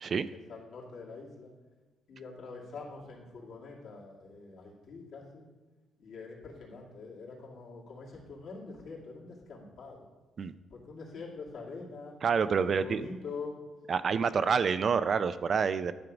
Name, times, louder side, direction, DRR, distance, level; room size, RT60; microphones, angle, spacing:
voice 1, 0.3-1.5 2.1-5.5 6.0-10.1 10.7-12.2 12.6-13.6 14.4-14.6, left 4 dB, 70° left, -3 dB, 2.3 m, -45 dB
voice 2, 12.2-13.1 13.9-15.9, right 6 dB, 50° right, 13 dB, 0.4 m, -28 dB
11.0 x 3.8 x 5.9 m, 1.2 s
cardioid pair, 90°, 0 cm